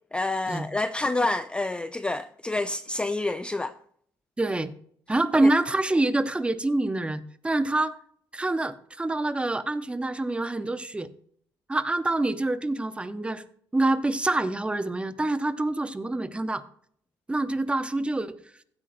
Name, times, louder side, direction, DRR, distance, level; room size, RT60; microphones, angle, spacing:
voice 1, 0.1-3.7 5.4-5.5, left 2 dB, 10° left, 0.4 m, -28 dB
voice 2, 4.4-4.7 5.1-7.9 8.3-11.1 11.7-13.4 13.7-16.6 17.3-18.4, right 2 dB, 15° right, 0.7 m, -26 dB
15.5 x 8.2 x 2.6 m
cardioid pair, 100°, 8 cm